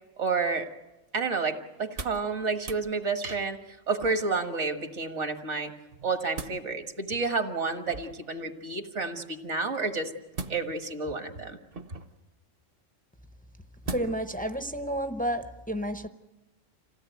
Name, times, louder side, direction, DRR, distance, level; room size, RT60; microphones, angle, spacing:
voice 1, 0.2-0.7 1.1-3.6 3.9-5.7 6.0-10.1 10.5-11.6, right 4 dB, 65° right, 6 dB, 2.0 m, -30 dB
sound 1, 1.8-2.3 2.6-2.9 4.0-4.4 5.9-6.6 7.8-8.3 10.3-11.0 11.7-12.2 13.8-14.3 14.8-14.9, right 3 dB, 50° right, 1.2 m, -39 dB
voice 2, 13.9-16.1, equal, 10° left, 9 dB, 0.5 m, -31 dB
27.0 x 17.0 x 9.1 m, 1.0 s
omnidirectional pair, 1.3 m